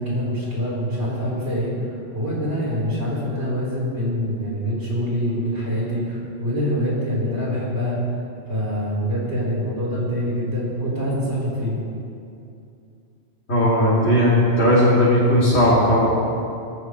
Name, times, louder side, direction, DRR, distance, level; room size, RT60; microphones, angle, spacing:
voice 1, 0.0-1.7 2.1-8.0 8.5-11.8, equal, 80° right, -6 dB, 4.8 m, -25 dB
voice 2, 13.5-16.1, equal, 75° left, -10 dB, 3.5 m, -17 dB
18.0 x 15.0 x 3.3 m, 2.5 s
omnidirectional pair, 1.1 m